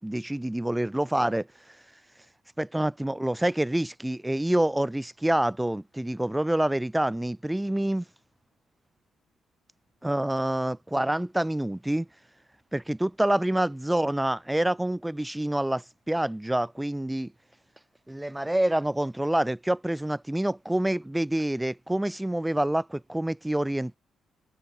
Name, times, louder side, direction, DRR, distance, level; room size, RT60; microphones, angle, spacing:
voice 1, 0.0-1.5 2.6-8.0 10.0-12.1 12.7-17.3 18.1-24.0, right 1 dB, 5° right, 6.3 m, -27 dB
cardioid pair, 90°, 0 cm